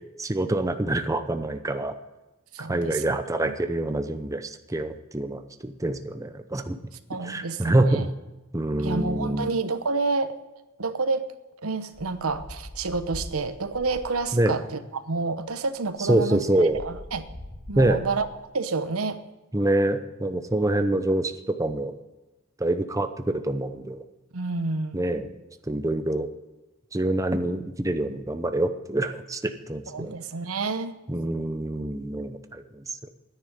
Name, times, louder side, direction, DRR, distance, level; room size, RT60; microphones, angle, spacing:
voice 1, 0.2-2.0 2.6-6.8 7.2-8.1 8.5-9.5 14.3-14.6 16.1-16.8 17.8-18.0 19.5-21.9 22.6-24.0 24.9-25.3 25.7-26.3 26.9-30.1 31.1-33.0, right 1 dB, 15° right, 8 dB, 0.7 m, -26 dB
voice 2, 2.5-3.5 7.1-8.1 8.8-10.3 10.8-11.3 11.6-16.5 16.8-17.3 17.7-18.3 18.5-19.2 24.3-25.0 29.9-31.0, right 3 dB, 90° right, 11 dB, 0.9 m, -29 dB
sound 1, 11.9-14.5 15.4-15.5 15.8-18.5, left 1 dB, 65° left, 3.8 m, -42 dB
10.0 x 9.9 x 9.1 m, 1.1 s
head